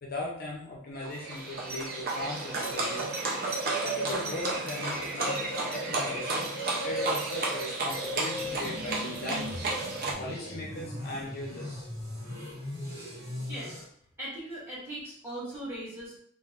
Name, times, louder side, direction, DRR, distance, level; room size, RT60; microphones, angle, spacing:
voice 1, 0.0-3.1 3.8-6.5 6.8-9.6 10.2-11.8, left 2 dB, 45° left, -1 dB, 0.5 m, -38 dB
Livestock farm animals working animals, 1.0-10.1, right 2 dB, 45° right, 0.5 m, -32 dB
sound 1, 8.4-13.8, left 1 dB, 70° right, 1.3 m, -39 dB
voice 2, 12.3-12.7 13.3-13.7 14.2-16.2, right 1 dB, 10° right, -8 dB, 1.4 m, -40 dB
3.2 x 2.4 x 2.4 m, 0.63 s
head